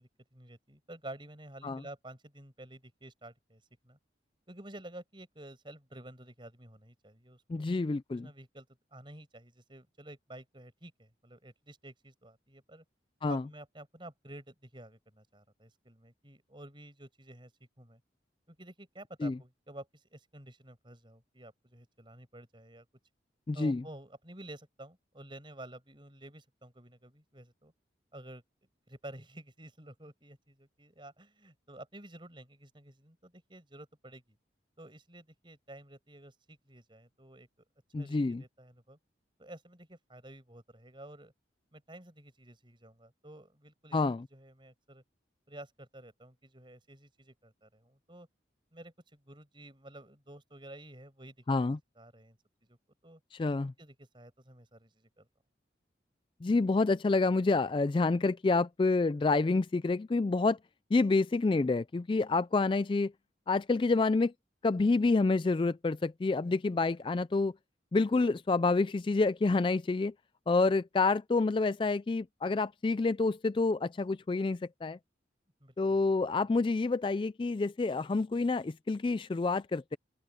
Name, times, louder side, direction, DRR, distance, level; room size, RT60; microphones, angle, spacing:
voice 1, 0.0-4.0 4.5-7.7 8.1-8.7 8.9-12.8 13.3-17.5 17.8-18.0 18.5-22.9 23.5-27.7 28.1-28.4 28.9-34.4 34.8-37.5 38.0-39.0 39.4-41.3 41.7-44.0 44.3-45.0 45.5-48.3 48.7-51.6 52.0-52.4 52.7-52.8 53.0-53.2 53.6-55.3 75.6-76.1, right 1 dB, 25° right, 5.6 m, -51 dB
voice 2, 7.5-8.3 13.2-13.4 19.2-19.4 23.5-23.8 37.9-38.4 43.9-44.3 51.5-51.8 53.3-53.7 56.4-60.6 60.9-63.1 63.5-64.3 64.6-67.5 67.9-70.1 70.5-75.0 75.8-80.0, left 3 dB, 25° left, 0.3 m, -28 dB
open air
head